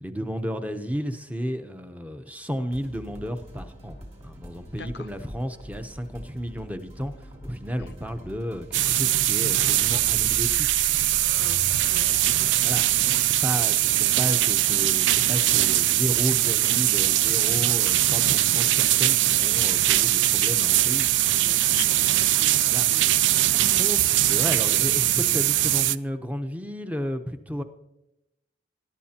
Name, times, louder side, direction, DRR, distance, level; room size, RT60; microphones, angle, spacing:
voice 1, 0.0-4.0 4.2-11.4 12.0-21.3 22.7-22.9 23.5-27.6, equal, 10° right, 8 dB, 0.7 m, -33 dB
sound 1, 2.7-16.1, equal, 35° right, 3.5 m, -43 dB
voice 2, 4.8-5.1 7.8-8.0 11.3-12.1 21.2-22.6 22.9-23.1, left 6 dB, 55° left, 14 dB, 0.5 m, -41 dB
sound 2, 8.7-26.0, right 14 dB, 75° right, 0.4 m, -21 dB
22.5 x 11.0 x 2.9 m, 0.89 s
head